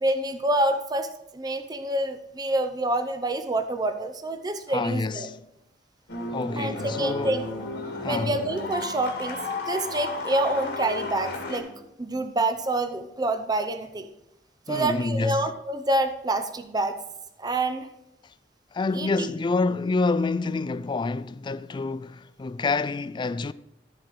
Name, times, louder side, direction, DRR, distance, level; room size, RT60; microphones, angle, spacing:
voice 1, 0.0-1.1 1.3-5.3 6.6-7.4 8.1-9.4 9.6-11.7 12.0-14.1 14.7-17.0 17.4-17.9 18.9-19.3, right 2 dB, 25° right, 0.6 m, -27 dB
voice 2, 4.7-5.4 6.3-7.4 8.0-8.4 14.7-15.5 18.7-23.5, left 3 dB, 25° left, 0.3 m, -27 dB
sound 1, 6.1-11.6, left 3 dB, 65° left, 2.0 m, -33 dB
14.5 x 4.8 x 4.7 m
head